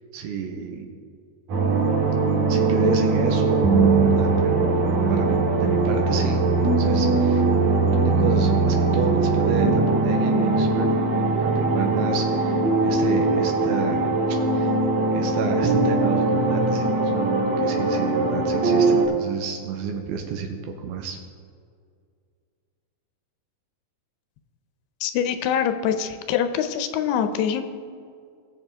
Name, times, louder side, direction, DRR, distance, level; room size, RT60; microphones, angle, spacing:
voice 1, 0.1-0.9 2.5-14.8 15.1-21.2, right 5 dB, 80° right, 3 dB, 2.8 m, -31 dB
sound 1, 1.5-19.1, right 3 dB, 50° right, 2.8 m, -21 dB
voice 2, 25.0-27.6, left 8 dB, 80° left, 9 dB, 2.7 m, -24 dB
20.5 x 6.9 x 3.6 m, 2.2 s
omnidirectional pair, 4.6 m